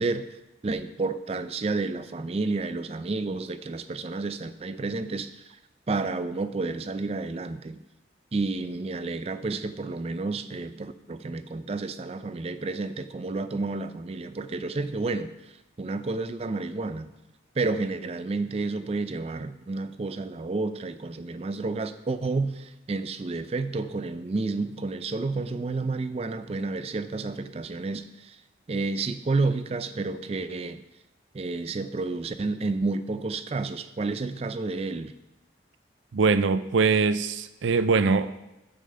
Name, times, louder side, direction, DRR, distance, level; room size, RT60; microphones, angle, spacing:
voice 1, 0.0-5.4 5.9-7.8 8.3-17.1 17.5-28.4 28.7-30.8 31.3-35.1, right 3 dB, 35° right, 12 dB, 0.4 m, -30 dB
voice 2, 36.1-38.4, right 4 dB, 85° right, 14 dB, 0.5 m, -22 dB
6.8 x 5.5 x 6.6 m, 0.97 s
head